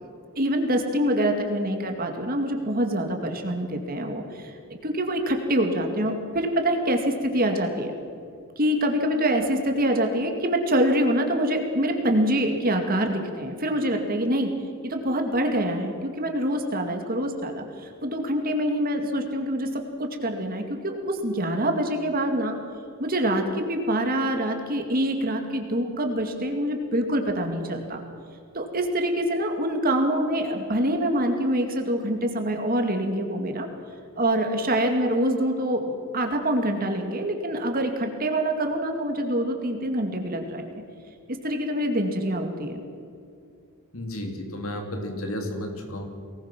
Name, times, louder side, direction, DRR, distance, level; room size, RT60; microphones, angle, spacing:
voice 1, 0.4-7.9 8.6-14.5 14.8-22.6 23.0-28.0 28.5-33.7 34.2-40.6 41.3-42.8, right 1 dB, 40° right, 4 dB, 2.2 m, -25 dB
voice 2, 43.9-46.0, left 1 dB, 65° left, 3 dB, 3.2 m, -32 dB
24.0 x 19.0 x 6.1 m, 2.4 s
head